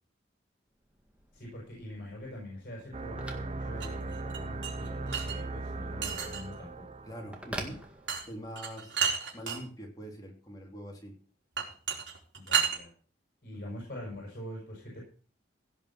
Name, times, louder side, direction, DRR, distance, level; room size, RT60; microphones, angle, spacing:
Telephone, 0.8-8.6, right 1 dB, 5° right, 1.9 m, -48 dB
voice 1, 1.3-7.0 12.3-12.9 13.4-15.0, left 1 dB, 50° left, -2 dB, 5.6 m, -44 dB
sound 1, 2.9-8.1, right 2 dB, 35° right, 0.7 m, -39 dB
sound 2, 3.8-5.4 6.0-6.6 8.1-8.2 8.6-9.6 11.6-12.8, right 7 dB, 75° right, 4.3 m, -31 dB
voice 2, 7.1-7.8 8.3-9.0 9.3-11.2 13.5-13.8, equal, 20° left, 0 dB, 3.7 m, -43 dB
17.0 x 5.6 x 7.7 m, 0.43 s
head